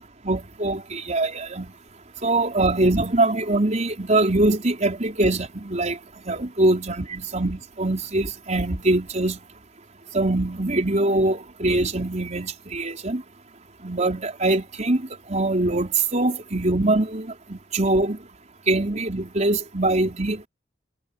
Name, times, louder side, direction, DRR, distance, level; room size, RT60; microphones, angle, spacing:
voice 1, 0.3-1.7 2.2-6.0 6.2-9.4 10.1-13.2 13.8-18.2 18.7-20.5, right 2 dB, 40° right, 4.7 m, -23 dB
head